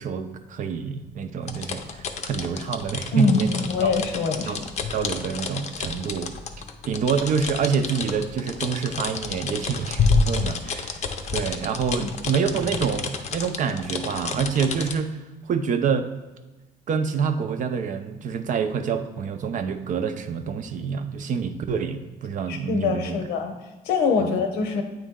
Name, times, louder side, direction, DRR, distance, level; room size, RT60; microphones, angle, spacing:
voice 1, 0.0-3.9 4.5-4.6 4.9-6.3 6.9-11.0 11.3-15.2 15.5-16.1 16.9-23.2 24.2-24.4, right 6 dB, 50° right, 8 dB, 0.6 m, -27 dB
sound 1, 1.4-14.9, left 4 dB, 40° left, 0.6 m, -29 dB
voice 2, 3.1-4.5 12.0-12.1 22.5-23.5 23.9-24.8, left 4 dB, 90° left, 5 dB, 0.8 m, -24 dB
8.5 x 3.1 x 3.7 m, 1.2 s
cardioid pair, 110°, 17 cm